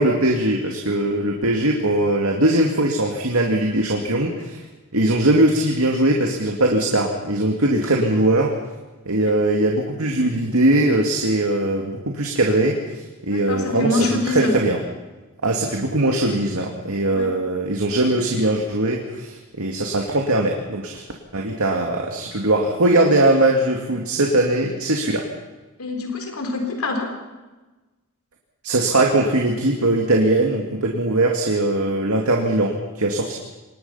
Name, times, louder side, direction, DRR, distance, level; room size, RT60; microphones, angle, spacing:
voice 1, 0.0-4.6 4.9-8.5 9.0-14.8 15.4-21.0 21.3-25.2 28.6-33.4, right 1 dB, 75° right, 1 dB, 2.4 m, -20 dB
voice 2, 13.3-14.5 17.1-17.3 25.8-27.1, left 2 dB, 75° left, 4 dB, 3.7 m, -25 dB
25.0 x 20.5 x 5.7 m, 1.2 s
head